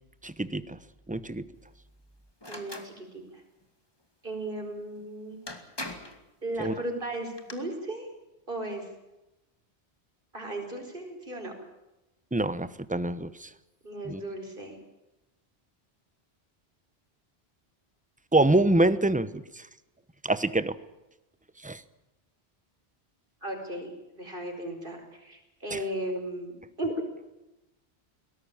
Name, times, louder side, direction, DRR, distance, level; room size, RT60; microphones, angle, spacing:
voice 1, 0.2-0.8 1.1-1.4 6.6-6.7 12.3-13.5 14.0-14.2 18.3-19.6 20.2-20.8 21.6-21.8 25.7-25.8, right 2 dB, 10° right, 14 dB, 0.8 m, -25 dB
sound 1, 2.4-2.9 5.0-5.1 5.5-6.2 7.1-7.5, left 1 dB, 25° left, 2.4 m, -39 dB
voice 2, 2.5-3.2 4.2-5.4 6.4-8.1 8.5-8.9 10.3-11.5 13.8-14.8 23.4-23.9 24.2-26.5 26.8-26.9, right 1 dB, 55° right, 4 dB, 5.1 m, -35 dB
22.0 x 18.0 x 8.9 m, 0.96 s
omnidirectional pair, 1.1 m